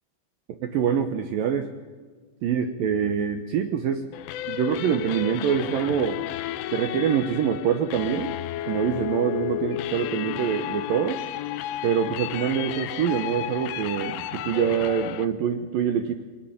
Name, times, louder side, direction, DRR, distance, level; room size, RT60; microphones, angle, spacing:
voice 1, 0.6-1.7 2.4-4.1 4.5-6.2 6.7-8.4 8.7-11.2 11.8-16.1, right 8 dB, 75° right, 8 dB, 2.0 m, -25 dB
sound 1, 4.1-15.3, left 12 dB, 85° left, 3.4 m, -32 dB
22.0 x 19.5 x 8.8 m, 1.5 s
omnidirectional pair, 5.5 m